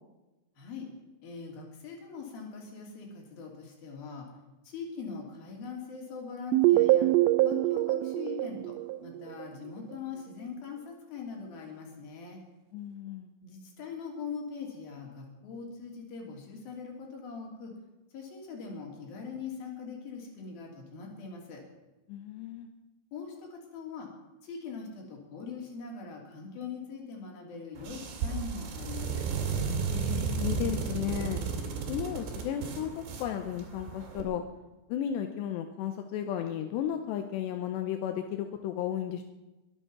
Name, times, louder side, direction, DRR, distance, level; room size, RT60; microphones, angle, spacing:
voice 1, 0.6-0.9 1.2-4.3 4.6-7.1 7.4-8.8 9.0-12.4 13.4-17.7 18.1-21.6 23.1-24.1 24.4-29.3, left 5 dB, 50° left, 0 dB, 4.7 m, -42 dB
sound 1, 6.5-9.5, right 16 dB, 85° right, 3.2 m, -24 dB
voice 2, 12.7-13.3 22.1-22.7 29.9-31.4 31.9-32.9 33.2-34.4 34.9-39.2, left 10 dB, 75° left, 6 dB, 2.7 m, -34 dB
sound 2, 27.8-34.2, right 5 dB, 65° right, 4.5 m, -33 dB
22.5 x 9.3 x 6.1 m, 1.1 s
omnidirectional pair, 5.6 m